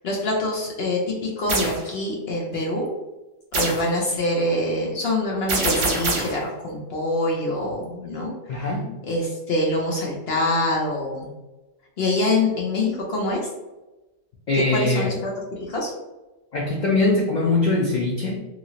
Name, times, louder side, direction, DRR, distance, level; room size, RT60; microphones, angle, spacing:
voice 1, 0.0-2.9 3.5-8.7 9.1-11.3 12.0-13.4 14.5-15.9, left 2 dB, 60° left, -2 dB, 0.7 m, -25 dB
sound 1, 1.5-1.8 3.5-3.9 5.5-6.4, right 3 dB, 60° right, 0.9 m, -24 dB
voice 2, 8.5-8.9 14.5-15.1 16.5-18.4, left 2 dB, 90° left, -2 dB, 0.4 m, -22 dB
3.0 x 2.5 x 2.7 m, 1.1 s
omnidirectional pair, 1.3 m